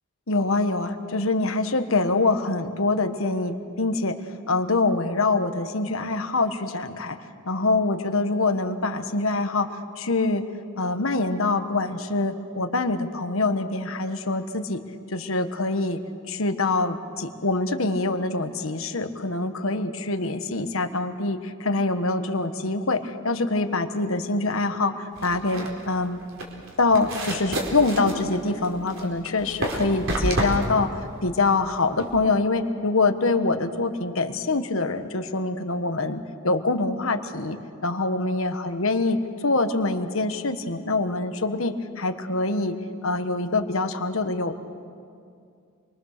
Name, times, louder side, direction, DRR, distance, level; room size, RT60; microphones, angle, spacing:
voice 1, 0.3-4.1 4.5-7.2 7.4-9.7 10.0-10.4 10.8-14.8 15.1-16.0 16.3-26.2 26.8-39.2 39.4-42.7 43.0-44.5, left 3 dB, 70° left, 7 dB, 1.4 m, -25 dB
sound 1, 25.2-32.2, right 1 dB, 70° right, 4.1 m, -30 dB
28.0 x 23.0 x 6.7 m, 2.3 s
head